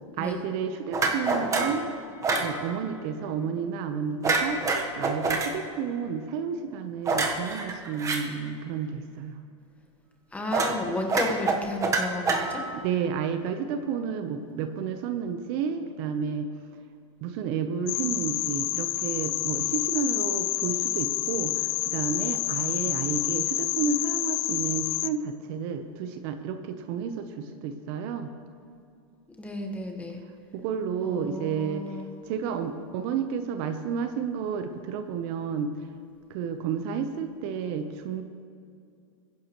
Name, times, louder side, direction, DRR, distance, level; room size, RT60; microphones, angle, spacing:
voice 1, 0.2-1.9 2.4-9.4 12.8-16.5 17.2-28.3 30.5-32.0 32.3-35.8 36.3-38.2, right 6 dB, 50° right, 8 dB, 0.9 m, -31 dB
sound 1, 0.9-1.8 2.2-2.5 4.2-5.5 7.0-8.2 10.5-10.8 11.1-12.8, right 3 dB, 20° right, 1.2 m, -26 dB
voice 2, 10.3-12.6 29.4-30.2 31.0-32.1, left 2 dB, 10° left, 2 dB, 1.4 m, -33 dB
sound 2, 17.9-25.1, left 19 dB, 45° left, 0.4 m, -28 dB
21.0 x 10.5 x 3.1 m, 2.4 s
supercardioid pair, 135°, 17 cm